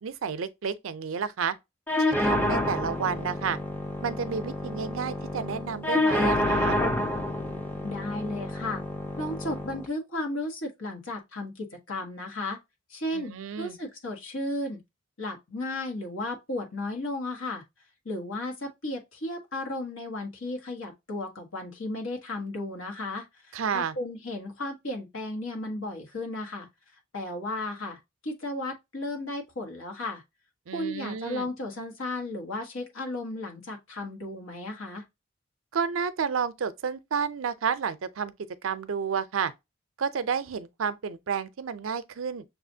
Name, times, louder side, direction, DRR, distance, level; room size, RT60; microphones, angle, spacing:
voice 1, 0.0-1.5 2.0-3.6 4.0-6.8 13.1-13.8 23.5-24.0 30.7-31.5 35.7-38.3 38.6-39.5 40.0-42.4, right 6 dB, 80° right, 0.5 m, -31 dB
sound 1, 1.9-9.9, left 1 dB, 10° left, 0.6 m, -28 dB
voice 2, 7.8-8.8 9.2-12.6 12.9-14.8 15.2-17.6 18.0-26.7 27.1-30.2 30.7-35.0, left 2 dB, 80° left, 1.4 m, -34 dB
6.6 x 2.4 x 2.7 m
head